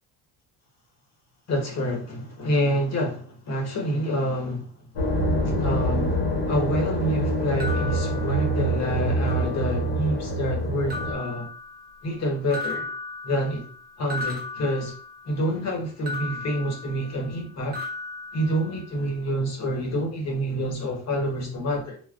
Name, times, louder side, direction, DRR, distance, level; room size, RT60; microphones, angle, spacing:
voice 1, 1.5-4.9 5.4-11.5 12.0-12.9 13.2-13.7 14.0-15.0 15.3-17.8 18.3-22.0, equal, 40° left, 0.9 m, -27 dB
sound 1, 5.0-11.1, right 1 dB, 75° left, 1.0 m, -25 dB
sound 2, 7.6-8.9 9.3-10.0 10.9-12.2 12.5-15.5 16.1-17.4 17.7-19.1, left 3 dB, 25° right, 0.7 m, -36 dB
3.6 x 2.1 x 2.3 m
cardioid pair, 140°, 40 cm